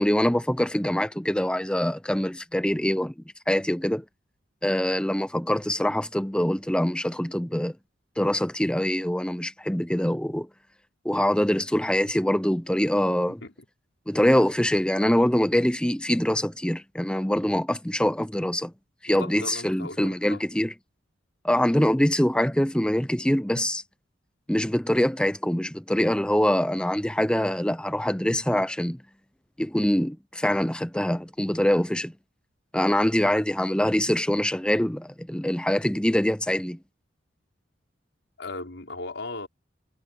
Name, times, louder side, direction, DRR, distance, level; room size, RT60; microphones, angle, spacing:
voice 1, 0.0-3.1 3.5-4.0 4.6-7.8 8.2-10.5 11.0-13.4 14.1-18.7 19.0-20.7 21.4-23.8 24.5-29.0 29.6-32.1 32.7-36.8, equal, 5° left, 0.7 m, -24 dB
voice 2, 19.1-20.4 38.4-39.5, left 2 dB, 75° left, 5.4 m, -37 dB
head